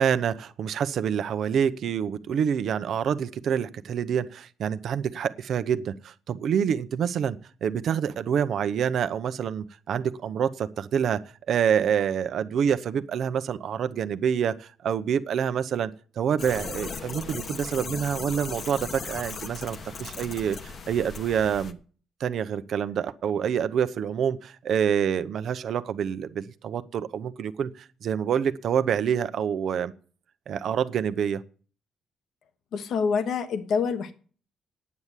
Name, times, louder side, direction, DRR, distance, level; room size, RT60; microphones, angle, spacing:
voice 1, 0.0-11.2 11.5-15.9 16.2-21.8 22.2-29.9 30.5-31.4, right 8 dB, 65° right, 0.8 m, -27 dB
sound 1, 16.4-21.7, left 5 dB, 50° left, 1.1 m, -37 dB
voice 2, 32.7-34.1, left 5 dB, 70° left, 1.2 m, -26 dB
9.6 x 7.3 x 8.2 m
cardioid pair, 90°, 0 cm